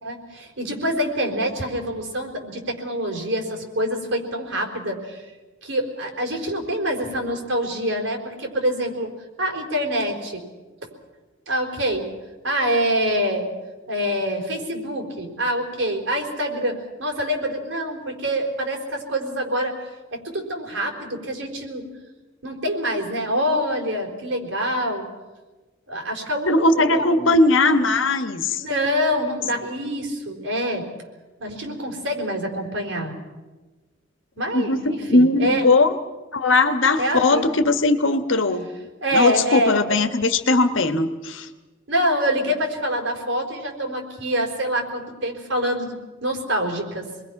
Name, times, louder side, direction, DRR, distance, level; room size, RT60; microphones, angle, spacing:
voice 1, 0.0-5.2 5.6-9.1 9.4-10.4 10.8-10.9 11.5-12.1 12.4-13.5 13.9-19.7 20.1-21.9 22.4-25.0 25.9-27.3 28.5-30.9 31.4-33.1 34.4-35.7 37.0-37.6 39.0-40.0 41.9-47.1, equal, 75° right, 2 dB, 4.3 m, -25 dB
voice 2, 26.5-28.6 34.5-35.9 36.3-38.7 39.1-41.5, left 2 dB, 80° left, 9 dB, 1.4 m, -19 dB
27.5 x 21.0 x 5.9 m, 1.2 s
head